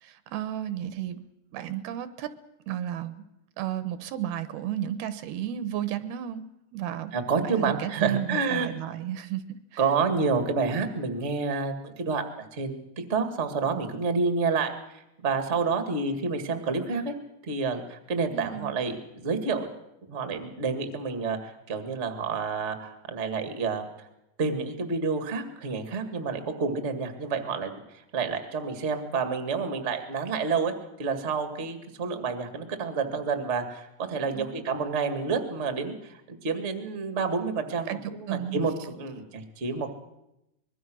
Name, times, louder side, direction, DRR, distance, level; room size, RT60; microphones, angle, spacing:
voice 1, 0.0-1.2 1.5-2.4 2.7-3.2 3.6-7.2 7.4-9.6 18.3-18.8 34.4-34.6 37.9-38.6, right 11 dB, 80° right, 13 dB, 2.9 m, -33 dB
voice 2, 7.1-8.7 9.8-17.1 17.4-19.7 20.1-23.9 24.4-27.7 28.1-30.7 31.0-39.9, right 4 dB, 30° right, 7 dB, 1.4 m, -29 dB
24.5 x 22.0 x 6.3 m, 0.88 s
omnidirectional pair, 4.5 m